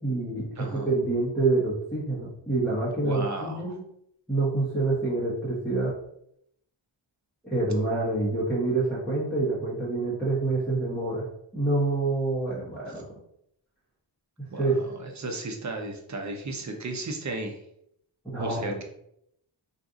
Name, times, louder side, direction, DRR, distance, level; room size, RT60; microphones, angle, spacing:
voice 1, 0.0-3.8 4.3-5.9 7.4-11.3 11.5-13.0 14.6-14.8 18.2-18.8, right 3 dB, 5° left, -10 dB, 1.0 m, -27 dB
voice 2, 0.6-0.9 3.0-3.8 14.5-17.6 18.4-18.8, right 2 dB, 40° right, 3 dB, 0.6 m, -34 dB
2.6 x 2.4 x 3.6 m, 0.74 s
wide cardioid pair, 95°, 47 cm